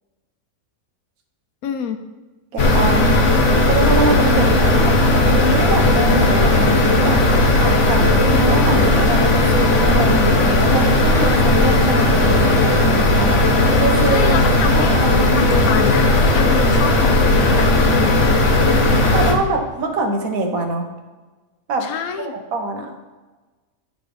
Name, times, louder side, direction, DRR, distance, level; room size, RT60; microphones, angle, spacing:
voice 1, 1.6-2.0 4.7-5.0 14.1-15.0 15.4-18.3 21.8-22.3, left 7 dB, 90° left, 8 dB, 1.2 m, -27 dB
voice 2, 2.5-3.0 3.7-7.2 7.6-14.4 14.7-15.5 19.1-20.9 21.7-21.9 22.2-22.9, right 3 dB, 80° right, 4 dB, 1.5 m, -24 dB
sound 1, 2.6-19.3, left 2 dB, 60° left, 1.3 m, -15 dB
10.5 x 3.9 x 5.0 m, 1.2 s
omnidirectional pair, 1.5 m